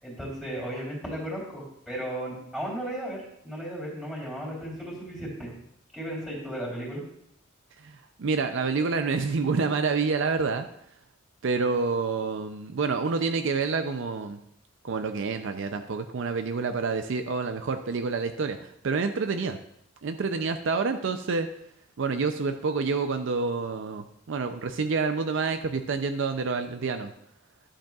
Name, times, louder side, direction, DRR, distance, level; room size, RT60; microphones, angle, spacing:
voice 1, 0.0-5.5 5.9-7.0, right 1 dB, ahead, -4 dB, 3.1 m, -35 dB
voice 2, 7.8-10.7 11.4-14.4 14.8-19.6 20.0-21.5 22.0-27.1, right 4 dB, 65° right, 8 dB, 0.5 m, -28 dB
11.5 x 7.4 x 2.4 m, 0.75 s
head